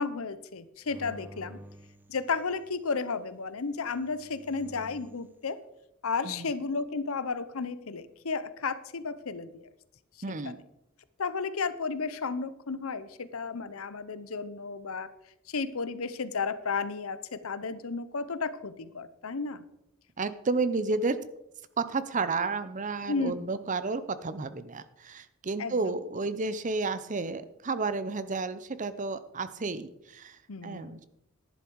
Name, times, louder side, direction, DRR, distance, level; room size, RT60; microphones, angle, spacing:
voice 1, 0.0-1.6 2.1-5.6 6.0-9.7 10.4-10.6 11.2-15.1 15.5-19.6 23.1-23.5 25.6-26.0 30.5-30.9, left 4 dB, 75° left, 15 dB, 0.8 m, -33 dB
sound 1, 0.9-2.8 3.8-5.3, equal, 10° right, 0.8 m, -50 dB
voice 2, 10.2-10.6 20.2-21.2 21.8-31.0, right 3 dB, 35° right, 13 dB, 0.7 m, -31 dB
11.0 x 10.5 x 4.7 m, 0.83 s
head